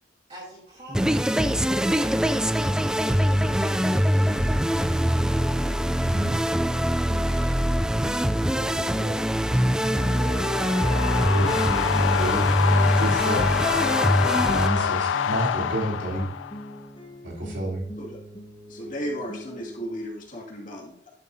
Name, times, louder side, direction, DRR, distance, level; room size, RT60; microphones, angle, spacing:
voice 1, 0.3-3.9 7.2-7.6 8.8-9.3 9.5-10.5, right 1 dB, 35° right, -6 dB, 3.2 m, -46 dB
sound 1, 0.9-20.3, left 1 dB, 30° left, 1.6 m, -41 dB
sound 2, 0.9-14.7, equal, 5° right, 0.3 m, -23 dB
voice 2, 5.9-6.4 11.3-11.5 12.1-12.5 13.0-13.6 14.5-16.3 17.2-17.8, right 1 dB, 75° right, -2 dB, 3.3 m, -29 dB
sound 3, 9.6-16.7, left 8 dB, 85° left, 0.4 m, -26 dB
voice 3, 18.7-21.1, equal, 45° left, -2 dB, 2.3 m, -35 dB
11.5 x 7.7 x 2.7 m, 0.69 s
head